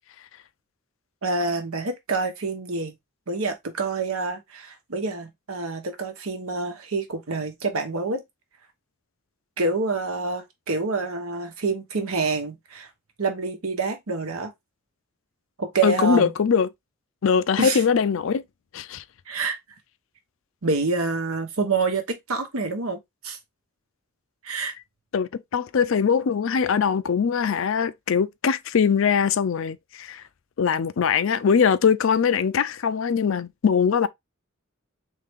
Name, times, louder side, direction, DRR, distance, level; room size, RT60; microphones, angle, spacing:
voice 1, 1.2-3.0 3.3-8.2 9.6-12.9 13.2-14.5 15.6-16.3 17.6-17.8 19.3-19.6 20.6-23.0 23.2-23.4 24.4-24.7, right 3 dB, 85° right, 1.1 m, -27 dB
voice 2, 15.8-16.7 17.2-18.4 18.7-19.0 25.1-30.2 30.6-34.1, left 6 dB, 65° left, 0.4 m, -22 dB
3.7 x 3.3 x 3.5 m
head